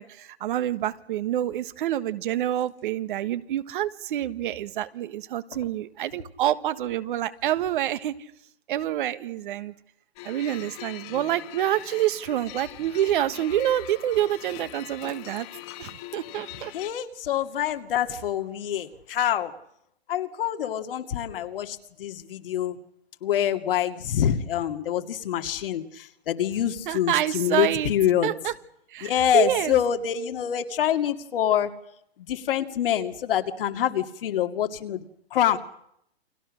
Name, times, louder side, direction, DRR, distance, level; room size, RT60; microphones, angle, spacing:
voice 1, 0.0-8.1 8.7-9.7 10.2-15.5 15.8-16.7 26.9-27.9 28.2-28.5 28.9-29.7, right 12 dB, 55° right, 1.5 m, -27 dB
sound 1, 10.2-16.9, left 15 dB, 35° left, 1.6 m, -42 dB
voice 2, 16.7-19.5 20.1-22.8 23.2-28.4 29.0-31.7 32.2-35.0 35.3-35.6, left 10 dB, 60° left, 2.3 m, -26 dB
29.5 x 23.5 x 6.4 m
hypercardioid pair, 125°, 31 cm